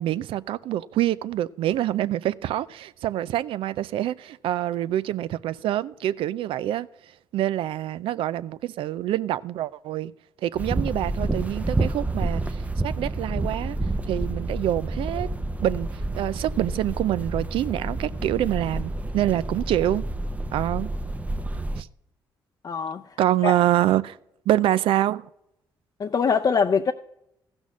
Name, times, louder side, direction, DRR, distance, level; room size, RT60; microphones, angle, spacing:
voice 1, 0.0-6.9 7.3-10.1 10.4-13.8 14.1-15.3 15.6-15.9 16.2-20.0 20.5-20.9 21.8-21.9 23.2-24.2 24.5-25.3, right 13 dB, 75° right, 0.4 m, -26 dB
sound 1, 10.5-21.8, right 2 dB, 15° right, 0.6 m, -29 dB
voice 2, 22.6-23.0 23.4-23.5 26.0-26.9, left 6 dB, 45° left, 0.6 m, -22 dB
14.5 x 6.2 x 6.2 m
supercardioid pair, 60°, 9 cm